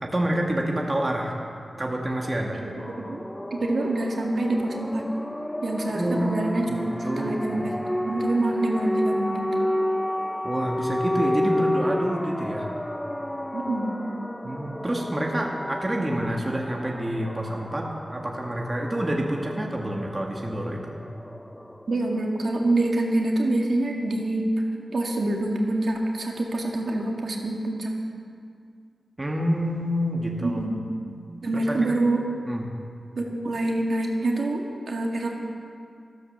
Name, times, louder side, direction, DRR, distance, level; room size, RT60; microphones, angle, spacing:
voice 1, 0.0-1.4 1.8-2.6 5.9-6.4 6.7-6.8 7.0-7.6 10.4-12.7 14.4-21.0 29.2-30.6 31.5-32.0 32.5-32.7, right 1 dB, 25° right, -1 dB, 1.6 m, -28 dB
voice 2, 2.5-3.2 3.5-5.1 5.6-9.7 13.5-13.9 21.9-24.5 24.9-27.9 30.4-30.8 31.4-32.2 33.1-35.3, right 2 dB, 65° right, 0 dB, 2.1 m, -26 dB
sound 1, 2.8-22.2, left 1 dB, 10° left, 0.4 m, -31 dB
14.0 x 12.5 x 7.0 m, 2.3 s
wide cardioid pair, 125°, 0 cm